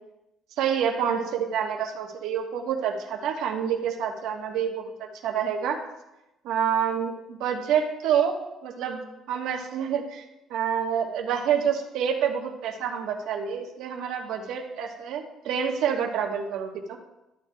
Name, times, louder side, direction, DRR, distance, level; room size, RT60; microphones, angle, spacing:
voice 1, 0.6-5.8 6.4-8.3 8.6-9.0 9.3-10.2 10.5-17.0, right 8 dB, 80° right, 2 dB, 1.2 m, -27 dB
13.0 x 9.2 x 2.3 m, 0.94 s
cardioid pair, 180°, 0 cm